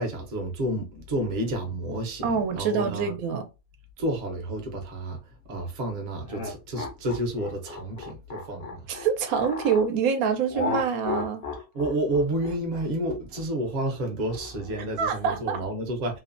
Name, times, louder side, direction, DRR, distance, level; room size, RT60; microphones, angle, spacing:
voice 1, 0.0-3.1 4.0-5.2 5.5-8.9 11.7-16.2, right 1 dB, 45° right, 0.6 m, -30 dB
voice 2, 2.2-3.4 8.9-11.4 15.0-15.6, right 6 dB, 80° right, 1.0 m, -26 dB
sound 1, 6.3-9.9 10.5-15.0, left 4 dB, 55° left, 0.8 m, -34 dB
3.0 x 2.1 x 2.5 m
omnidirectional pair, 1.5 m